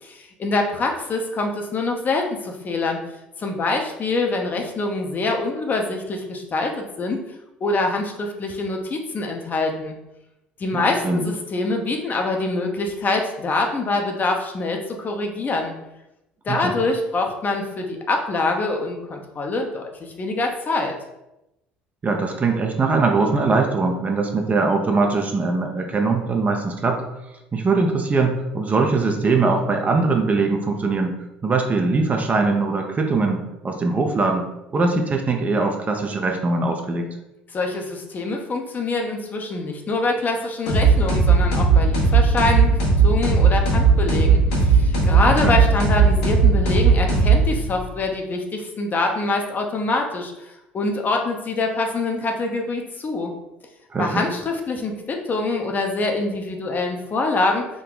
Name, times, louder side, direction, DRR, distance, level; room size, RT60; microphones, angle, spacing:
voice 1, 0.0-3.0 3.4-7.2 7.6-10.0 10.6-15.8 16.4-20.9 37.5-42.8 43.0-53.3 54.0-57.7, left 3 dB, 35° left, 2 dB, 0.7 m, -25 dB
voice 2, 10.7-11.2 16.5-16.8 22.0-27.0 27.5-31.2 31.4-34.5 34.7-37.1 45.3-45.6 53.9-54.2, right 3 dB, 30° right, 3 dB, 0.6 m, -21 dB
sound 1, 40.7-47.8, right 4 dB, 75° left, 1.1 m, -17 dB
3.6 x 2.1 x 3.9 m, 0.91 s
hypercardioid pair, 65°, 5 cm